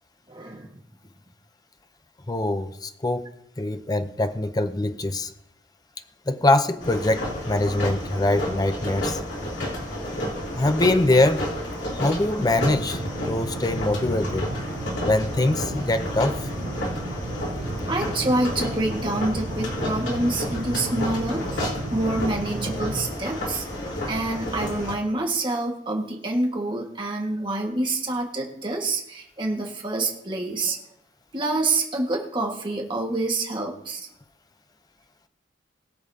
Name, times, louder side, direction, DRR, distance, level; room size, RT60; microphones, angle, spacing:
voice 1, 0.3-0.7 17.9-21.6 21.9-23.7 24.1-30.8 31.3-34.1, right 2 dB, 25° right, 0 dB, 1.7 m, -27 dB
voice 2, 2.3-3.3 3.6-5.3 6.3-9.2 10.5-11.5 11.9-13.0 13.3-14.5 15.0-16.4, left 2 dB, 20° left, 9 dB, 0.6 m, -23 dB
sound 1, 6.8-24.9, left 1 dB, 70° left, 3.1 m, -31 dB
sound 2, 12.5-23.1, right 2 dB, 80° right, 1.0 m, -34 dB
21.5 x 7.1 x 2.8 m, 0.73 s
head